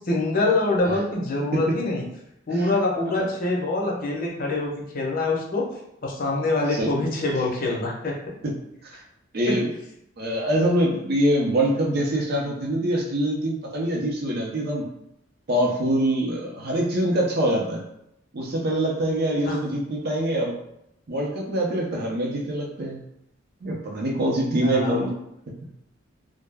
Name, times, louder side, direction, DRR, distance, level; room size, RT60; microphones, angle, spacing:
voice 1, 0.0-2.0 2.5-5.7 6.0-8.1 9.5-9.6 19.5-19.6 24.6-25.1, left 2 dB, 45° left, -2 dB, 0.6 m, -25 dB
voice 2, 9.3-9.7 10.2-14.9 15.5-17.8 18.3-20.6 21.1-23.0 23.6-25.1, right 1 dB, 50° right, -1 dB, 0.5 m, -24 dB
2.2 x 2.0 x 3.3 m, 0.80 s
head